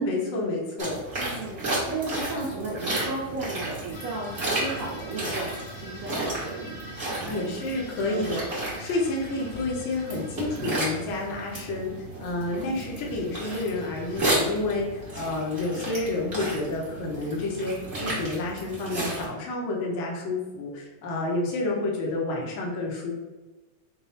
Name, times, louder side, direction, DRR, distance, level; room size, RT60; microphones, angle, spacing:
voice 1, 0.0-1.0 7.2-8.5 8.8-11.9 12.2-23.1, left 2 dB, 85° left, -2 dB, 1.1 m, -29 dB
sound 1, 0.8-19.3, right 1 dB, 55° right, 0.6 m, -33 dB
voice 2, 1.1-1.6 1.9-6.8 7.2-7.7 8.1-8.3 12.6-12.8, right 3 dB, 75° right, -5 dB, 1.3 m, -34 dB
sound 2, 3.9-11.7 12.8-14.2, left 1 dB, 65° left, 1.2 m, -46 dB
5.2 x 2.0 x 4.1 m, 1.1 s
omnidirectional pair, 3.5 m